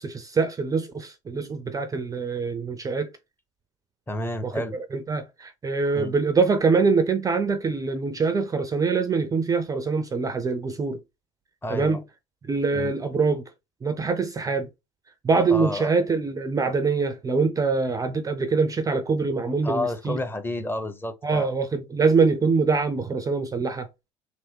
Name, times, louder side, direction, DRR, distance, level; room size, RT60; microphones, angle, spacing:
voice 1, 0.0-3.1 4.4-4.5 4.9-11.0 11.7-12.0 12.5-13.4 13.8-14.7 15.2-20.2 21.2-23.9, right 4 dB, 20° right, 0.5 m, -24 dB
voice 2, 4.1-4.8 5.9-6.1 11.6-12.0 12.7-12.9 15.5-15.9 19.6-21.5, left 1 dB, 15° left, 0.8 m, -30 dB
3.5 x 2.9 x 2.8 m
hypercardioid pair, 75°, 17 cm